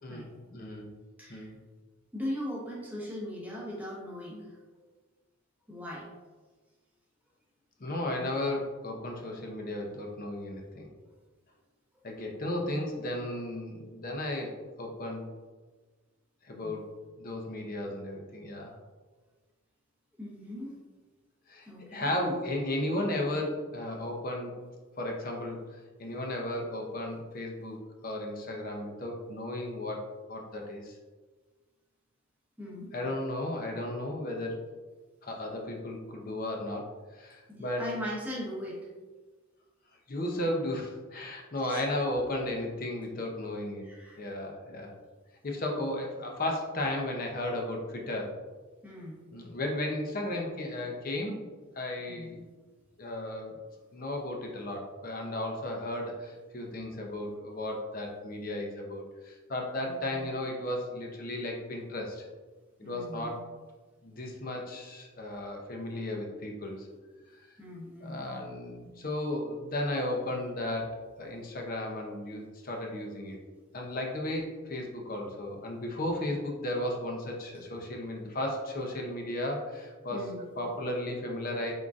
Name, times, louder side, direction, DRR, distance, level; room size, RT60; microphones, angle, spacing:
voice 1, 0.0-0.9 1.3-1.6 7.8-10.9 12.0-15.3 16.4-16.9 17.2-18.8 21.5-24.6 25.0-31.0 32.9-34.6 35.2-37.9 40.1-43.9 44.2-44.9 45.4-48.3 49.3-51.4 51.7-52.3 53.0-53.6 53.9-62.3 62.8-63.4 64.0-66.9 68.0-73.4 73.7-80.2 80.6-81.7, left 1 dB, 40° left, 1 dB, 0.6 m, -34 dB
voice 2, 1.2-1.5 2.1-4.5 5.7-6.0 16.6-16.8 20.2-20.7 21.6-22.1 32.6-32.9 37.5-38.9 41.7-41.8 43.8-44.2 45.8-45.9 48.8-49.2 52.0-52.4 59.8-60.3 62.8-63.4 67.6-68.3 80.1-80.4, equal, 10° right, -5 dB, 0.9 m, -39 dB
3.8 x 3.6 x 2.4 m, 1.3 s
head